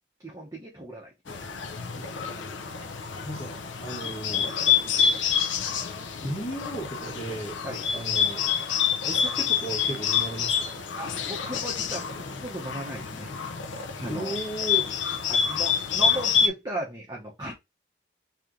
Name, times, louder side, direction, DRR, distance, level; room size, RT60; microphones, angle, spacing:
voice 1, 0.2-1.5 4.8-5.0 7.6-7.9 11.0-13.3 13.7-14.4 15.3-17.5, right 1 dB, 20° right, 0.9 m, -37 dB
Bird, 1.3-16.5, left 7 dB, 85° left, 0.6 m, -27 dB
voice 2, 3.2-4.6 5.7-5.8 6.2-7.6 7.9-8.6 9.1-10.8 14.1-14.9, right 2 dB, 30° left, 1.5 m, -35 dB
3.2 x 2.9 x 3.7 m
head